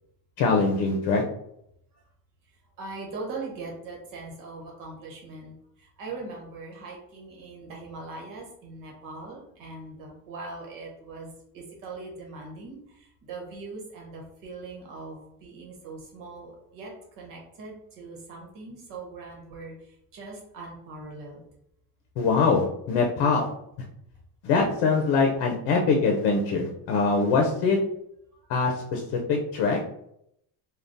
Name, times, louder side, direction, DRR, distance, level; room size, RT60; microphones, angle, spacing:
voice 1, 0.4-1.2 22.2-23.5 24.4-27.8 28.5-29.0 29.3-29.8, left 4 dB, 75° left, 1 dB, 0.7 m, -23 dB
voice 2, 2.8-11.3 11.5-19.7 20.1-21.4, right 3 dB, 55° right, -1 dB, 1.1 m, -41 dB
3.6 x 2.3 x 2.6 m, 0.75 s
cardioid pair, 175°, 39 cm